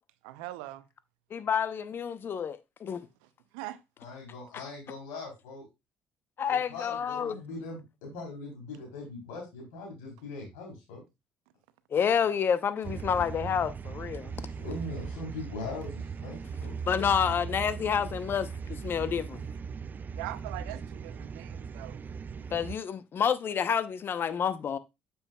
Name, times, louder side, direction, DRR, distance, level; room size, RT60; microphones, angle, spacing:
voice 1, 0.2-0.8 3.5-3.8 20.1-22.0, right 16 dB, 80° right, 0.6 m, -41 dB
voice 2, 1.3-3.1 6.4-7.4 11.9-14.3 16.9-19.4 22.5-24.8, left 7 dB, 50° left, 0.8 m, -29 dB
voice 3, 4.0-5.7 6.5-11.0 14.2-16.7, left 2 dB, 80° left, 3.6 m, -41 dB
sound 1, 12.8-22.8, right 6 dB, 40° right, 0.5 m, -39 dB
8.8 x 7.1 x 2.3 m
hypercardioid pair, 60°, 5 cm